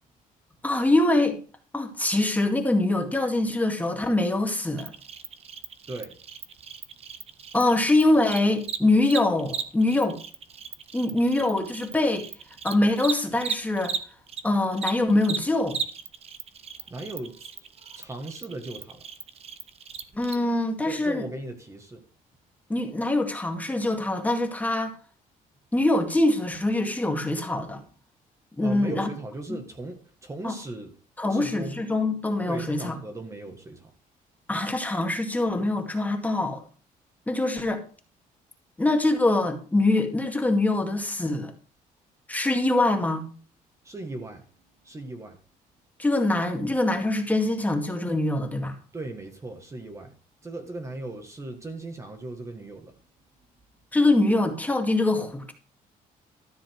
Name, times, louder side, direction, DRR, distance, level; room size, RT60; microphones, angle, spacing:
voice 1, 0.6-1.4 1.7-4.9 7.5-10.2 10.9-12.3 12.6-14.0 14.4-15.8 20.1-21.2 22.7-25.0 25.7-27.8 28.6-29.1 30.4-30.5 31.2-33.0 34.5-36.6 37.3-37.8 38.8-41.5 42.3-43.3 46.0-48.8 53.9-55.5, left 2 dB, 10° left, 2.0 m, -24 dB
Cricket, 4.8-14.4 14.7-20.3, right 6 dB, 40° right, 1.3 m, -36 dB
voice 2, 5.9-6.2 16.9-17.5 17.9-19.0 20.8-22.0 28.6-30.9 31.3-31.8 32.5-33.9 43.8-44.5 44.8-45.4 48.9-50.2 50.4-52.9, right 2 dB, 20° right, 1.8 m, -37 dB
13.5 x 7.1 x 4.7 m
cardioid pair, 135°, 15 cm